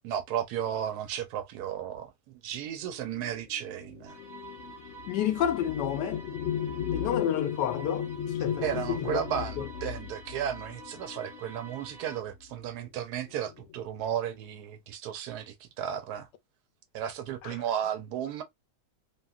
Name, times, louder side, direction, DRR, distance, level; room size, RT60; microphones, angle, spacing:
voice 1, 0.0-4.2 8.6-16.3 16.9-18.4, right 9 dB, 70° right, 1.1 m, -34 dB
sound 1, 3.0-11.9 12.8-13.0 13.3-13.9, left 9 dB, 65° left, 0.7 m, -36 dB
sound 2, 4.1-12.2, right 2 dB, 20° right, 0.7 m, -48 dB
voice 2, 5.1-6.2 6.9-8.1 8.4-9.2 9.6-9.7 17.4-17.5, left 10 dB, 85° left, 1.2 m, -29 dB
3.0 x 2.6 x 2.3 m
omnidirectional pair, 1.8 m